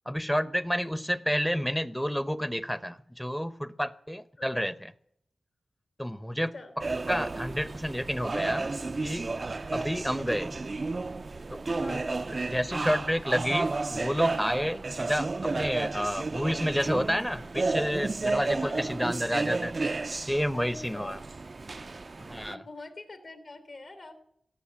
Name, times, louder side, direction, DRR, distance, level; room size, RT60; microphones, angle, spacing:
voice 1, 0.1-4.9 6.0-6.5 7.1-8.7 9.0-9.3 9.7-10.5 11.5-11.6 11.9-12.0 12.5-21.2 22.3-22.6, equal, 5° left, 16 dB, 0.8 m, -30 dB
sound 1, 6.8-22.5, right 3 dB, 45° right, 0.5 m, -32 dB
voice 2, 11.8-12.3 18.6-19.2 20.5-21.2 22.5-24.1, left 2 dB, 65° left, 8 dB, 3.4 m, -44 dB
17.5 x 7.2 x 9.9 m, 0.73 s
wide cardioid pair, 70°, 0 cm